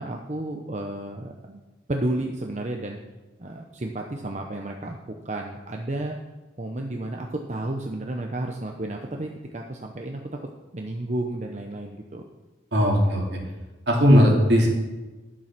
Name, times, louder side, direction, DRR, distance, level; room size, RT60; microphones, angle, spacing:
voice 1, 0.0-1.6 1.9-3.0 3.4-6.2 6.6-10.2 10.7-12.2, right 1 dB, 40° right, 2 dB, 0.8 m, -32 dB
voice 2, 12.7-13.4 13.9-14.7, equal, 65° right, -1 dB, 2.8 m, -18 dB
11.5 x 7.5 x 6.0 m, 1.2 s
head